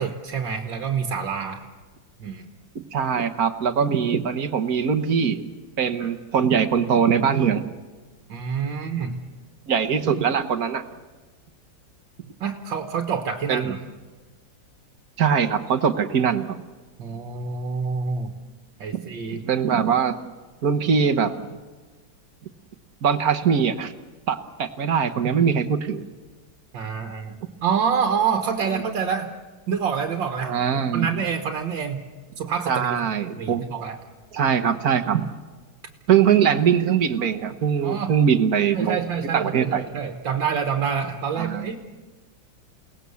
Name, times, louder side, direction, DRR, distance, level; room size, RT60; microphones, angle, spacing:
voice 1, 0.0-1.6 2.2-2.5 6.0-6.1 8.3-9.2 12.4-13.8 17.0-18.3 18.8-19.4 26.7-27.3 27.6-29.3 29.7-32.0 32.4-32.9 33.4-34.0 37.8-38.1 38.7-41.8, right 6 dB, 75° right, 4 dB, 2.1 m, -27 dB
voice 2, 2.7-5.4 5.8-7.7 9.7-10.8 13.5-13.7 15.2-16.6 18.9-19.0 19.3-20.2 20.6-21.6 23.0-23.9 24.3-26.0 28.7-28.8 30.4-31.1 32.7-33.7 34.3-35.3 36.1-39.0 39.3-39.8 41.4-41.7, right 7 dB, 55° right, 7 dB, 1.5 m, -22 dB
29.0 x 18.5 x 7.1 m, 1.3 s
omnidirectional pair, 2.1 m